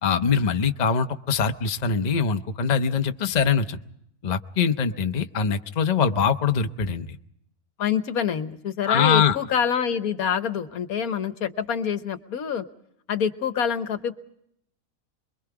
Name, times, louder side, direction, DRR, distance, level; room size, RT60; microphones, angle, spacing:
voice 1, 0.0-3.8 4.2-7.2 8.9-9.4, left 6 dB, 35° left, 7 dB, 0.8 m, -23 dB
voice 2, 7.8-12.6 13.1-14.1, left 7 dB, 75° left, 10 dB, 1.5 m, -26 dB
27.0 x 22.5 x 4.8 m, 0.74 s
omnidirectional pair, 1.6 m